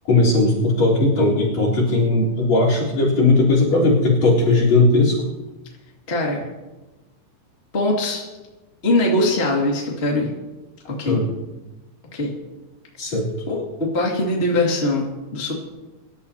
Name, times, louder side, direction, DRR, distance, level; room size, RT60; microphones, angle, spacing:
voice 1, 0.1-5.2 11.0-11.3 13.0-13.3, left 2 dB, 55° left, -3 dB, 5.1 m, -17 dB
voice 2, 6.1-6.5 7.7-8.3 8.8-10.3 10.9-11.2 12.1-12.3 13.5-15.6, left 2 dB, 20° left, -2 dB, 2.2 m, -22 dB
25.0 x 12.0 x 2.9 m, 1.1 s
omnidirectional pair, 3.7 m